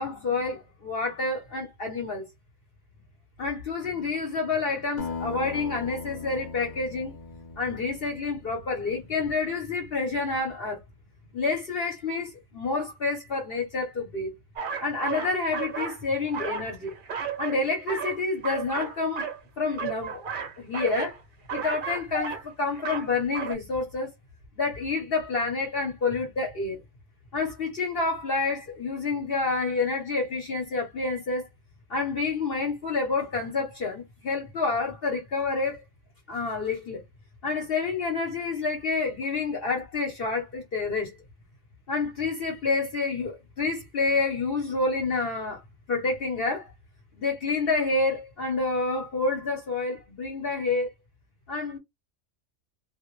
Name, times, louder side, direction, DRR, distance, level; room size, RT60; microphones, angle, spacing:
voice 1, 0.0-2.2 3.4-7.1 7.6-10.8 11.3-14.3 14.8-16.9 17.4-19.3 19.6-20.2 20.6-21.2 21.5-24.1 24.5-26.8 27.3-31.5 31.9-35.8 36.3-37.0 37.4-41.2 41.9-45.6 45.9-46.7 47.2-50.9 51.5-51.8, left 3 dB, 55° left, 0.8 m, -28 dB
Acoustic guitar, 5.0-9.8, left 4 dB, 70° left, 0.4 m, -40 dB
sound 1, 14.6-16.0 16.3-17.6 17.9-19.4 19.7-21.2 21.5-22.5 22.7-23.1 23.3-23.5, right 6 dB, 55° right, 0.6 m, -33 dB
2.2 x 2.0 x 3.0 m
omnidirectional pair, 1.4 m